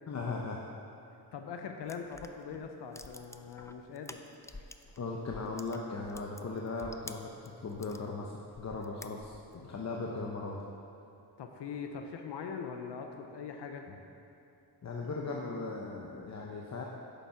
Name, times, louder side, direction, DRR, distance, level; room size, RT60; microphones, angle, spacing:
voice 1, 0.1-0.6 5.0-10.6 13.9-14.0 14.8-16.9, left 3 dB, 40° left, -1 dB, 0.9 m, -38 dB
voice 2, 1.3-4.2 4.5-4.6 11.4-13.8, left 6 dB, 80° left, 4 dB, 0.8 m, -42 dB
sound 1, 1.8-5.0 5.3-8.0 8.5-9.6, left 2 dB, 10° left, 0.3 m, -50 dB
9.3 x 7.1 x 5.8 m, 2.8 s
cardioid pair, 110°, 41 cm